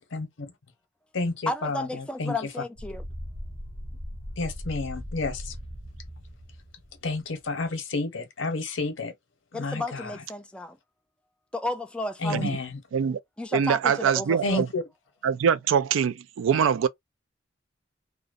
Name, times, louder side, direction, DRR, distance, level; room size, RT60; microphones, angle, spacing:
voice 1, 0.1-0.5 1.1-2.4 4.4-5.5 7.0-9.1 9.5-10.2 12.2-12.8 14.4-14.8, left 3 dB, 80° left, 0.8 m, -30 dB
voice 2, 1.5-3.0 9.5-10.8 11.5-12.6 13.4-14.6, left 1 dB, 5° left, 0.3 m, -33 dB
sound 1, 2.8-7.4, equal, 50° right, 0.7 m, -39 dB
voice 3, 13.5-14.7 15.2-16.9, right 7 dB, 85° right, 0.3 m, -23 dB
2.5 x 2.0 x 2.4 m
head